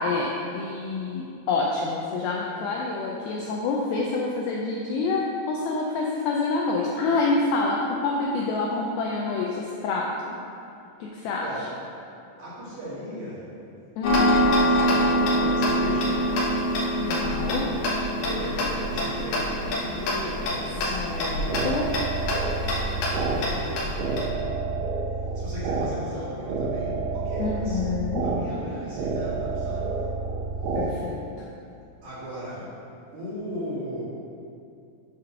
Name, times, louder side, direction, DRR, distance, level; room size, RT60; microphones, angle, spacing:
voice 1, 0.0-10.4 11.0-11.4 14.0-14.3 17.0-17.7 20.9-21.9 27.4-28.2 30.7-31.2, left 3 dB, 85° left, -2 dB, 2.1 m, -27 dB
voice 2, 11.4-11.8 12.4-13.5 14.4-16.4 18.2-21.1 22.5-24.9 25.3-27.8 28.2-30.1 30.7-30.9 32.0-32.7 33.1-34.0, equal, 55° right, -11 dB, 3.0 m, -37 dB
Tick-tock, 14.0-24.3, equal, 70° left, 2.3 m, -25 dB
sound 1, 21.1-30.9, right 4 dB, 90° right, 3.0 m, -29 dB
8.2 x 3.7 x 5.6 m, 2.5 s
omnidirectional pair, 4.9 m